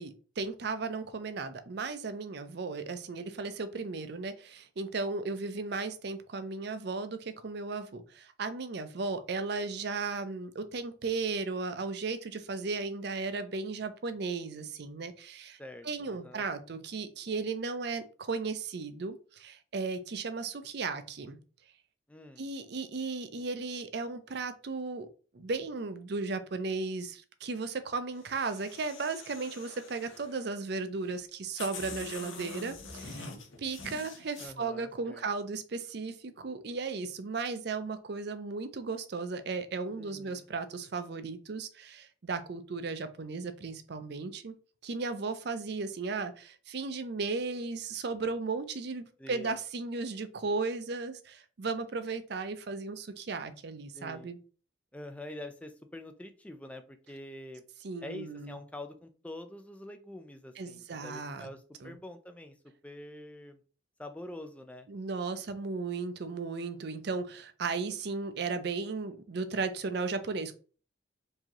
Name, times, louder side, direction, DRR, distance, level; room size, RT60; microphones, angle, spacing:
voice 1, 0.0-15.6 15.8-21.4 22.4-25.1 25.3-33.3 33.6-44.5 44.8-54.4 57.8-58.6 60.6-61.5 61.8-61.9 64.9-70.5, right 4 dB, 55° right, 10 dB, 0.5 m, -35 dB
voice 2, 15.6-16.5 22.1-22.5 34.4-35.2 39.9-40.5 49.2-49.5 53.9-54.3 54.9-57.6 58.0-62.6 62.8-63.6 64.0-64.9, left 1 dB, 5° left, 7 dB, 0.4 m, -46 dB
sound 1, 28.1-30.5 31.2-31.3 31.6-34.5, left 4 dB, 75° left, 1.0 m, -45 dB
4.7 x 2.8 x 2.9 m, 0.39 s
head